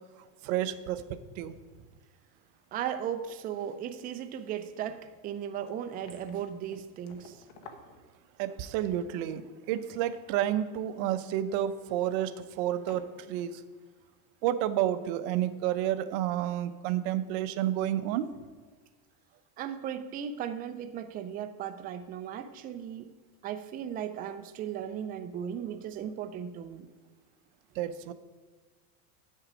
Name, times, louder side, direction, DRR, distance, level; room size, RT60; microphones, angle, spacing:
voice 1, 0.4-1.0 1.4-1.6 8.4-13.6 14.4-18.3 27.8-28.1, right 12 dB, 60° right, 11 dB, 0.7 m, -30 dB
sound 1, 2.6-3.3 3.7-3.8 4.1-4.2 4.5-8.7 9.6-10.3 10.7-11.0 12.0-12.2 12.8-13.4 13.8-13.9, left 4 dB, 60° left, 1.2 m, -54 dB
voice 2, 2.7-7.4 19.6-23.1 23.4-26.9, right 9 dB, 20° right, 9 dB, 0.3 m, -36 dB
8.5 x 6.5 x 4.9 m, 1.5 s
supercardioid pair, 135°, 45 cm